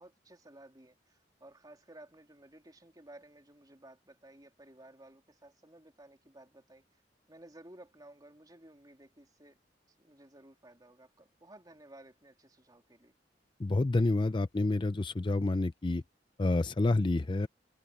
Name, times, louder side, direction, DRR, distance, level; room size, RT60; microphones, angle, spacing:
voice 1, 0.0-6.8 7.3-9.6 10.0-13.2, right 1 dB, 25° right, 3.3 m, -55 dB
voice 2, 13.6-16.0 16.4-17.5, left 2 dB, 30° left, 0.5 m, -28 dB
head